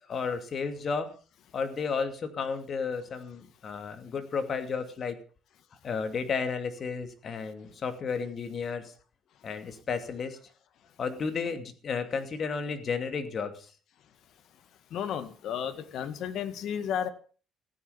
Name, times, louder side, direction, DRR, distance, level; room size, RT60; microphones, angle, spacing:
voice 1, 0.1-1.1 1.5-5.2 5.8-8.9 9.4-10.4 11.0-13.6, left 5 dB, 40° left, 2.5 m, -32 dB
voice 2, 14.9-17.1, left 8 dB, 65° left, 1.9 m, -33 dB
15.0 x 10.0 x 7.0 m
cardioid pair, 135°, 0 cm